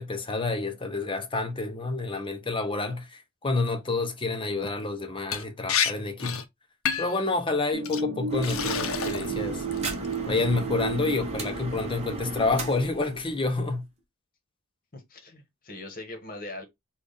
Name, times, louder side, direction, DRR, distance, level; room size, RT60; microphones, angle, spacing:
voice 1, 0.0-6.4 7.0-9.7 10.3-13.8, left 3 dB, 25° left, 0.6 m, -29 dB
Liquid, 5.3-5.4 5.7-5.9 6.2-6.4 6.9-7.2 7.8-8.0 8.4-9.3 9.7-10.1, left 8 dB, 70° left, 0.6 m, -28 dB
sound 1, 7.7-12.1, right 4 dB, 60° right, 0.5 m, -33 dB
sound 2, 8.3-13.8, right 2 dB, 30° right, 0.9 m, -36 dB
voice 2, 14.9-16.6, left 2 dB, 40° left, 1.1 m, -41 dB
3.4 x 2.4 x 3.8 m
head